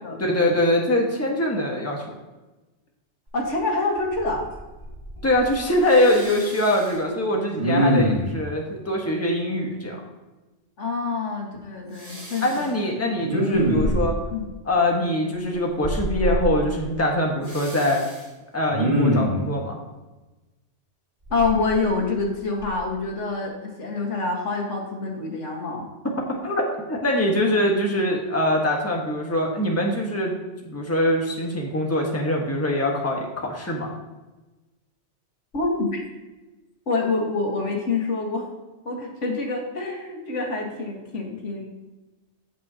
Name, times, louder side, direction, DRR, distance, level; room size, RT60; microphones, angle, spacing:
voice 1, 0.2-2.1 5.2-10.0 12.4-14.2 14.6-18.0 18.5-19.8 26.0-30.3 30.6-33.9, left 1 dB, 15° left, -1 dB, 1.4 m, -23 dB
voice 2, 3.3-4.5 10.8-12.7 14.3-14.5 21.3-25.9 35.5-36.0 36.9-38.5 38.9-41.7, left 3 dB, 80° left, 0 dB, 2.0 m, -26 dB
Respiratory sounds, 3.4-3.5 4.0-4.5 4.8-5.5 5.9-6.9 7.6-8.4 12.0-12.6 13.2-14.3 15.8-16.4 17.5-18.2 18.7-19.5 21.3-22.2 22.6-22.8, equal, 30° right, 1.9 m, -25 dB
16.0 x 5.5 x 2.9 m, 1.1 s
omnidirectional pair, 1.2 m